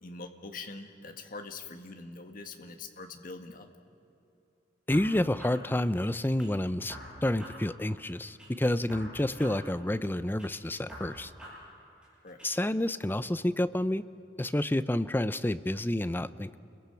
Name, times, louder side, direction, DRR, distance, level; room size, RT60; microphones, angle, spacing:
voice 1, 0.0-3.7 12.2-12.4, left 3 dB, 50° left, 5 dB, 1.6 m, -43 dB
voice 2, 4.9-11.3 12.4-14.0 14.4-16.6, left 1 dB, 10° left, 13 dB, 0.5 m, -29 dB
sound 1, 4.9-6.5 6.9-8.5 8.9-10.5 10.9-12.5, equal, 5° right, 7.7 m, -48 dB
30.0 x 22.0 x 5.8 m, 2.7 s
head